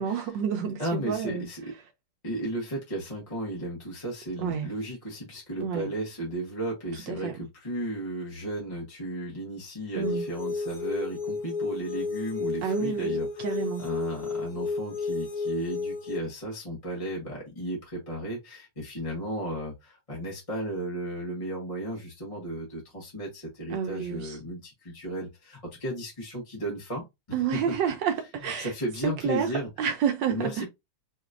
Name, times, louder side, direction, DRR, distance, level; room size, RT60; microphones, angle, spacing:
voice 1, 0.0-1.5 4.4-4.7 5.6-5.9 6.9-7.3 9.9-10.2 12.6-13.8 23.7-24.4 27.3-28.7 29.0-29.5 29.8-30.7, right 8 dB, 80° right, 1.3 m, -29 dB
voice 2, 0.8-1.6 2.2-13.4 13.8-27.7 28.6-29.7 30.3-30.7, right 1 dB, 20° left, 1.3 m, -34 dB
sound 1, 10.0-16.2, left 3 dB, 60° left, 1.3 m, -32 dB
5.0 x 3.0 x 2.4 m
omnidirectional pair, 2.0 m